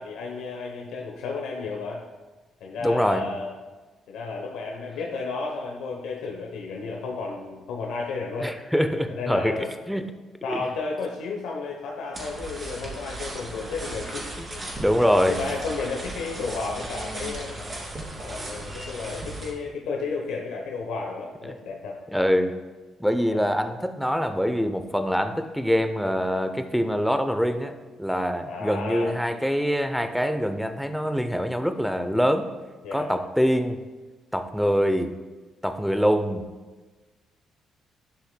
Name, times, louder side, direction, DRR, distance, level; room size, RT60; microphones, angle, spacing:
voice 1, 0.0-2.0 2.6-3.5 4.1-8.5 9.1-9.7 10.4-17.5 18.2-22.0 23.3-23.5 28.5-29.1 32.8-33.1, left 4 dB, 90° left, -1 dB, 0.8 m, -33 dB
voice 2, 2.8-3.2 8.4-9.6 9.9-10.1 10.5-10.6 14.8-15.4 21.4-21.5 22.1-22.5 23.0-32.5 32.9-33.8 34.3-35.1 35.6-36.5, equal, ahead, 8 dB, 0.6 m, -24 dB
sound 1, 12.1-19.5, right 1 dB, 30° right, 2.2 m, -36 dB
11.5 x 5.6 x 2.2 m, 1.3 s
cardioid pair, 90°, 0 cm